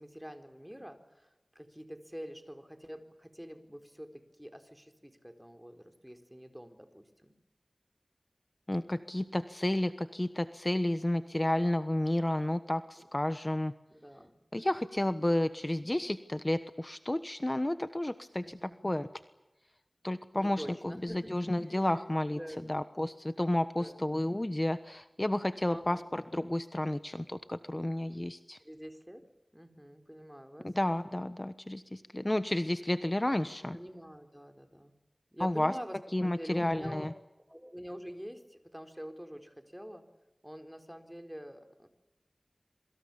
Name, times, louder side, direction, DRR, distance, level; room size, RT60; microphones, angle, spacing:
voice 1, 0.0-7.3 13.0-13.1 13.9-14.4 18.4-18.8 20.3-22.0 22.4-22.8 23.8-24.0 25.7-26.0 28.6-30.7 33.7-34.9 35.3-37.1 37.3-40.0 40.4-41.9, equal, 5° right, 7 dB, 4.3 m, -46 dB
voice 2, 8.7-13.7 14.5-19.1 20.0-22.4 22.7-28.6 30.6-33.8 35.4-35.7 36.1-37.1, left 1 dB, 30° left, 11 dB, 1.2 m, -31 dB
27.0 x 24.5 x 7.2 m, 0.97 s
wide cardioid pair, 40°, 0 cm